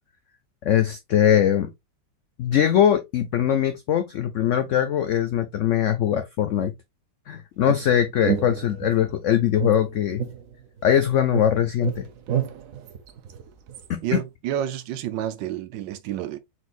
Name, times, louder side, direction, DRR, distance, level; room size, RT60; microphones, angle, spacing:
voice 1, 0.6-1.7 2.4-6.7 7.3-10.2 10.8-12.1 13.9-14.2, left 10 dB, 80° left, 0.6 m, -21 dB
sound 1, 7.7-9.1 9.6-11.0 11.3-13.9, right 8 dB, 65° right, 0.9 m, -30 dB
voice 2, 14.0-16.4, right 10 dB, 85° right, 1.3 m, -29 dB
4.4 x 4.0 x 2.4 m
omnidirectional pair, 1.9 m